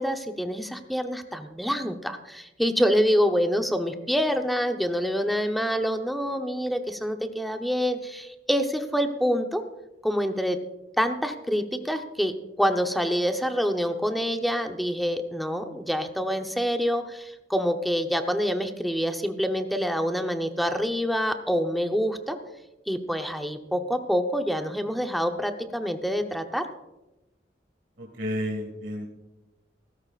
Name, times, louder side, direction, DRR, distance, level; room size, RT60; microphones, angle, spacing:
voice 1, 0.0-9.6 10.0-10.6 11.0-22.4 22.9-26.7, equal, ahead, 5 dB, 0.8 m, -26 dB
voice 2, 28.0-29.1, equal, 85° right, -1 dB, 2.0 m, -31 dB
17.0 x 14.5 x 2.5 m, 0.99 s
head